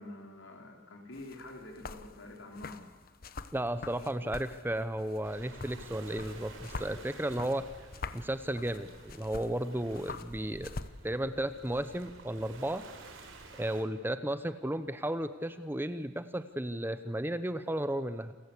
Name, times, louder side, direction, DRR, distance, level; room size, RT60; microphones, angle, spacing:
voice 1, 0.0-2.9, left 2 dB, 70° left, 2 dB, 4.7 m, -47 dB
sound 1, 1.1-10.9, left 3 dB, 50° left, 1.0 m, -46 dB
voice 2, 3.5-7.7 8.1-10.8 11.0-12.8 13.6-18.3, right 1 dB, 10° right, 12 dB, 0.8 m, -34 dB
Waves surf, 5.2-13.8, right 2 dB, 80° right, 3.8 m, -51 dB
28.5 x 15.0 x 8.4 m, 1.5 s
head